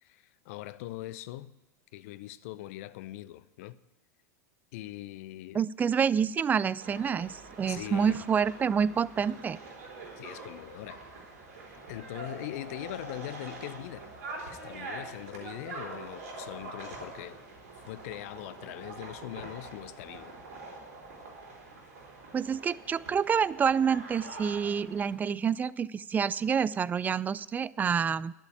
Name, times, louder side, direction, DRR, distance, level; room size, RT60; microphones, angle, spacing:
voice 1, 0.0-1.5 1.9-3.8 4.7-5.6 7.7-8.2 10.2-11.0 11.9-14.1 14.5-17.4 17.9-20.3, left 15 dB, 55° left, 0.6 m, -41 dB
voice 2, 5.5-9.6 22.3-28.3, right 7 dB, 20° right, 0.3 m, -28 dB
sound 1, 6.8-25.2, right 3 dB, 65° right, 3.9 m, -45 dB
11.5 x 7.3 x 8.7 m
hypercardioid pair, 90°, 9 cm